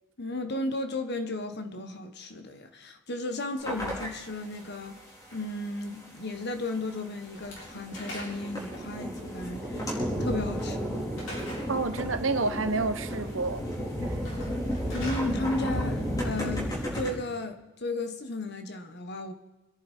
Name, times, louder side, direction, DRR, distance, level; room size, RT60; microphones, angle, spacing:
voice 1, 0.2-5.0 5.3-10.9 14.9-19.3, left 2 dB, 60° left, 1.5 m, -34 dB
sound 1, 3.6-4.1 4.6-4.7 5.3-5.4 6.9-7.0 7.2-17.1, equal, 20° left, 4.5 m, -33 dB
Slam / Wood, 7.3-8.6 11.1-11.7 14.1-15.3, left 1 dB, 85° left, 7.2 m, -41 dB
voice 2, 11.7-13.7 14.1-14.2, right 3 dB, 85° right, 1.3 m, -29 dB
26.5 x 10.5 x 4.7 m
head